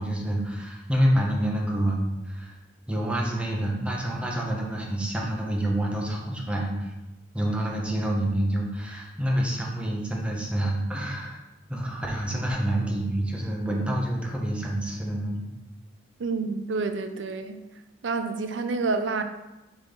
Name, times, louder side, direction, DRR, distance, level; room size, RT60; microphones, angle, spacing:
voice 1, 0.0-2.6 2.9-6.9 7.3-11.4 11.7-15.5, right 1 dB, 5° right, -2 dB, 0.9 m, -27 dB
voice 2, 16.2-17.6 18.0-19.2, right 4 dB, 90° right, 8 dB, 0.5 m, -28 dB
6.2 x 4.2 x 3.8 m, 1.0 s
head